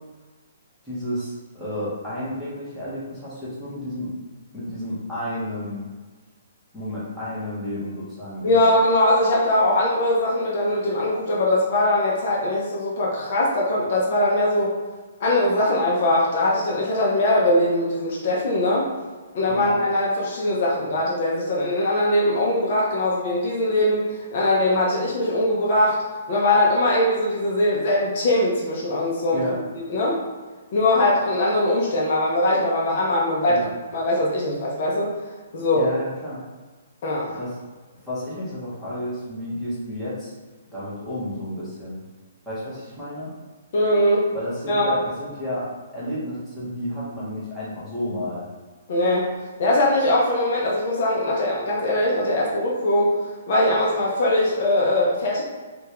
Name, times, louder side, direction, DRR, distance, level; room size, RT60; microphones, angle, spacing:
voice 1, 0.8-4.1 4.5-5.8 6.7-8.7 19.5-19.7 29.3-29.6 33.5-33.7 35.7-36.4 37.4-37.6 38.0-40.3 40.7-42.0 42.5-43.3 44.3-45.7 45.9-48.5, left 1 dB, ahead, -12 dB, 0.8 m, -31 dB
voice 2, 8.4-14.7 15.2-18.9 19.3-26.0 26.3-29.4 29.9-30.2 30.7-33.6 33.9-35.1 35.5-35.9 37.0-37.4 43.7-44.3 44.7-45.0 48.9-49.3 49.6-53.2 53.5-55.4, left 1 dB, 40° left, -4 dB, 0.6 m, -21 dB
3.4 x 2.2 x 2.9 m, 1.4 s
hypercardioid pair, 170°, 0 cm